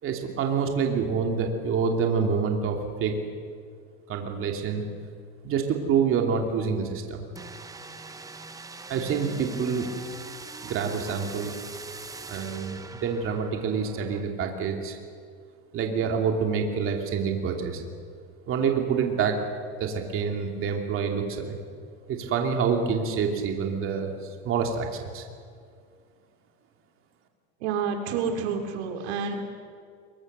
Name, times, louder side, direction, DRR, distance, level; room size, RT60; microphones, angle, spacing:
voice 1, 0.0-3.2 4.1-4.8 5.4-7.3 8.9-9.9 10.6-11.5 12.3-15.0 15.7-17.8 18.5-19.4 19.8-21.6 22.1-24.1 24.4-25.3, right 6 dB, 40° right, 3 dB, 2.8 m, -27 dB
sound 1, 7.4-14.2, right 3 dB, 10° right, 1.0 m, -41 dB
voice 2, 27.6-29.4, right 6 dB, 75° right, 4 dB, 2.9 m, -29 dB
23.5 x 22.0 x 6.8 m, 2.2 s
supercardioid pair, 135°, 34 cm